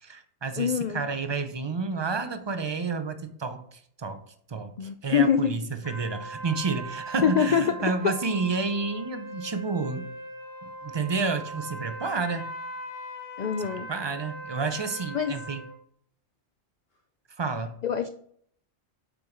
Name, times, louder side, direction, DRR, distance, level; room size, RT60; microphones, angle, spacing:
voice 1, 0.0-4.2 4.5-4.7 5.0-10.1 10.6-12.5 13.6-15.7 17.4-17.7, right 4 dB, 35° right, 9 dB, 0.4 m, -30 dB
voice 2, 0.6-1.0 4.8-5.5 7.2-7.6 13.4-13.9 15.1-15.3 17.8-18.1, left 8 dB, 85° left, 9 dB, 0.3 m, -24 dB
sound 1, 5.8-15.7, right 1 dB, 50° left, 1.7 m, -40 dB
7.4 x 4.6 x 3.8 m, 0.63 s
omnidirectional pair, 1.3 m